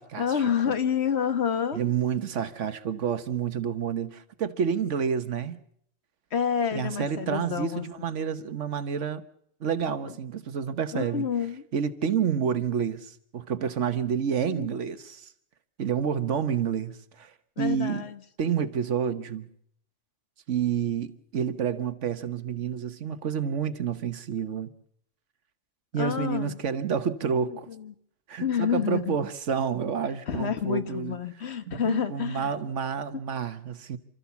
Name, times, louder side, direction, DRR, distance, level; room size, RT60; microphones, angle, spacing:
voice 1, 0.2-1.8 6.3-7.8 9.8-10.1 10.9-11.7 14.4-14.7 17.6-18.2 26.0-26.6 27.7-27.9 28.4-29.2 30.1-32.5, left 8 dB, 65° left, 1.4 m, -28 dB
voice 2, 1.7-5.6 6.7-9.2 9.6-11.3 11.7-15.3 15.8-18.0 18.4-19.5 20.5-24.7 25.9-27.7 28.3-31.2 31.7-34.0, right 7 dB, 85° right, 1.4 m, -29 dB
28.5 x 13.5 x 7.1 m
omnidirectional pair, 1.2 m